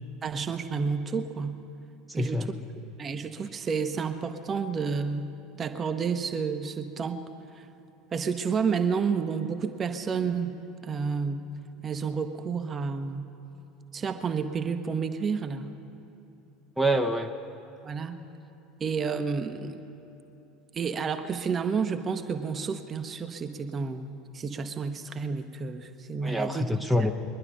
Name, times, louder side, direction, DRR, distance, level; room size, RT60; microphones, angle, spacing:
voice 1, 0.2-1.6 2.1-5.3 5.6-7.2 7.5-7.7 8.1-10.6 10.8-11.5 11.8-13.3 13.9-15.8 17.8-18.2 18.8-19.8 20.7-24.1 24.3-26.9, right 5 dB, 30° right, 8 dB, 0.9 m, -30 dB
voice 2, 2.2-2.5 16.8-17.3 26.2-27.1, equal, ahead, 3 dB, 0.8 m, -25 dB
22.5 x 11.0 x 5.6 m, 2.9 s
figure-of-eight pair, 70°, 0 cm